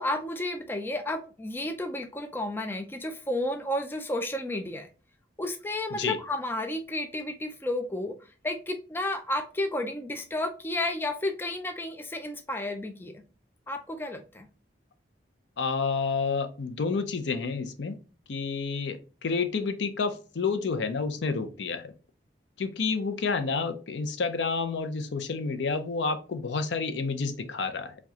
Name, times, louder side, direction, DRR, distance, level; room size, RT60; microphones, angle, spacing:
voice 1, 0.0-4.9 5.4-13.2 13.7-14.5, left 1 dB, 10° left, 6 dB, 0.3 m, -32 dB
voice 2, 15.6-18.0 18.3-21.9 22.6-28.0, left 4 dB, 75° left, 10 dB, 0.5 m, -29 dB
4.7 x 2.3 x 2.7 m, 0.35 s
head